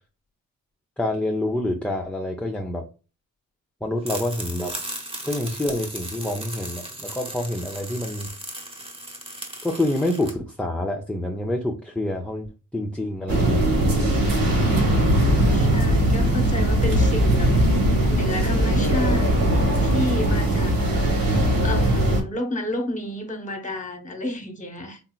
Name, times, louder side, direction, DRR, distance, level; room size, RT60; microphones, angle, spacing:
voice 1, 1.0-2.8 3.8-4.7 5.2-8.3 9.6-12.5 12.7-13.6, left 1 dB, 5° left, 0.5 m, -27 dB
sound 1, 4.0-10.3, right 1 dB, 15° right, 0.9 m, -36 dB
sound 2, 13.3-22.2, right 1 dB, 70° right, 1.6 m, -20 dB
voice 2, 14.5-15.1 15.5-19.3 19.8-20.8 21.6-25.0, left 1 dB, 20° left, 1.0 m, -31 dB
4.0 x 2.8 x 2.2 m
cardioid pair, 100°, 35 cm